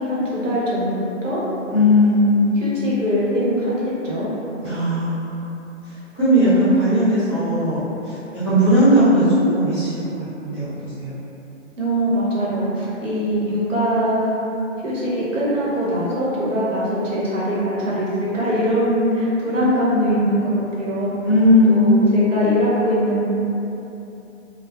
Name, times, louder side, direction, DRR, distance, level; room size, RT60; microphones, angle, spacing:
voice 1, 0.0-1.4 2.6-4.3 11.8-14.4 14.8-21.1 21.7-23.2, equal, 90° right, -8 dB, 1.0 m, -22 dB
voice 2, 1.7-2.8 4.6-5.6 6.1-8.2 8.4-11.1 21.2-22.4, equal, 10° left, -16 dB, 0.5 m, -17 dB
3.1 x 2.0 x 2.3 m, 2.9 s
hypercardioid pair, 150°, 37 cm